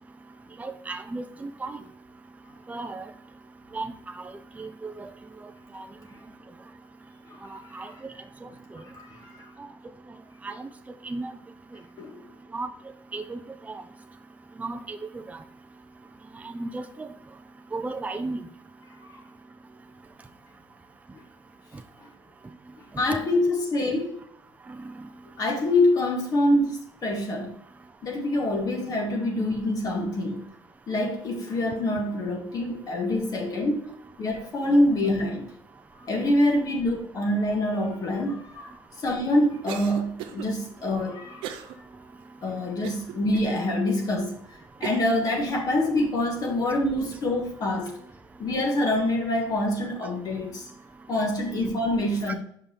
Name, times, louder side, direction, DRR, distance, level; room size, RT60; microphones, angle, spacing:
voice 1, 0.6-1.8 2.7-3.0 3.7-3.9 4.6-5.1 5.7-5.8 7.5-7.9 10.4-10.7 11.0-11.3 12.5-12.7 13.1-13.4 13.7-13.8 14.6-15.2 16.4-17.1 17.7-18.4 24.8-24.9, right 3 dB, 15° right, 0.6 m, -34 dB
voice 2, 8.9-9.5 12.0-12.2 23.0-24.2 25.4-27.6 28.0-30.5 30.9-33.9 34.2-35.5 36.0-41.4 42.4-44.4 44.8-47.9 48.4-50.7 51.1-52.3, left 1 dB, 45° left, 1.8 m, -25 dB
Cough, 39.7-40.5 41.4-41.8 42.2-42.3 42.8-43.5 44.1-44.2 44.8-45.1, right 10 dB, 80° right, 0.9 m, -37 dB
5.5 x 5.5 x 4.5 m
supercardioid pair, 90°, 9 cm